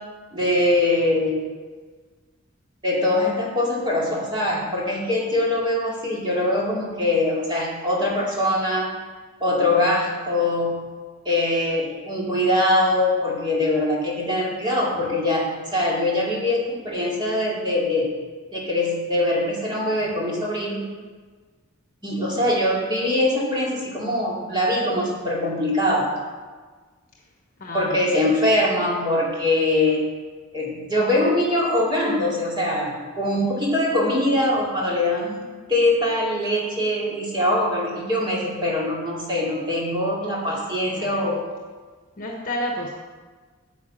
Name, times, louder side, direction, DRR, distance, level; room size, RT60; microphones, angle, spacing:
voice 1, 0.3-1.3 2.8-8.9 9.4-10.8 11.2-18.1 18.5-20.9 22.0-26.1 27.7-30.0 30.5-41.4, left 1 dB, 25° right, -4 dB, 2.6 m, -22 dB
voice 2, 27.6-28.0 40.8-41.3 42.2-42.9, equal, 45° left, 0 dB, 1.3 m, -31 dB
9.3 x 7.8 x 6.2 m, 1.4 s
head